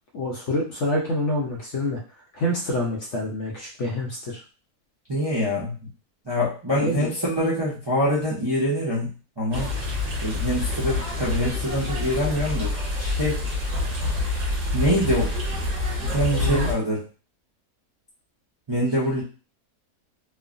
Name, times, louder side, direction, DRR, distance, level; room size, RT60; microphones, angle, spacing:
voice 1, 0.1-2.0 2.3-4.4 6.8-7.1 16.4-16.7, left 1 dB, 60° left, -2 dB, 0.8 m, -26 dB
voice 2, 5.1-5.7 6.3-9.1 9.4-9.7 10.2-13.4 14.7-15.3 16.0-17.0 18.7-19.2, equal, 30° right, -8 dB, 0.4 m, -25 dB
sound 1, 9.5-16.7, left 2 dB, 55° right, 1.4 m, -27 dB
3.1 x 2.1 x 2.5 m, 0.35 s
omnidirectional pair, 1.7 m